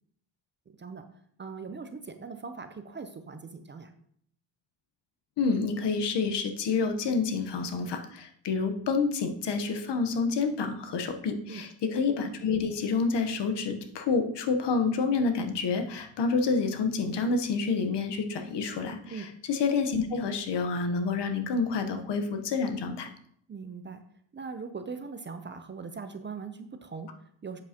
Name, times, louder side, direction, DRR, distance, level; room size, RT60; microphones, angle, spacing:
voice 1, 0.8-3.9 11.5-11.7 19.1-19.4 23.5-24.0 24.3-27.6, right 5 dB, 25° right, 8 dB, 0.5 m, -41 dB
voice 2, 5.4-23.1, left 4 dB, 60° left, 7 dB, 1.1 m, -28 dB
7.9 x 7.2 x 2.9 m, 0.65 s
cardioid pair, 110°, 46 cm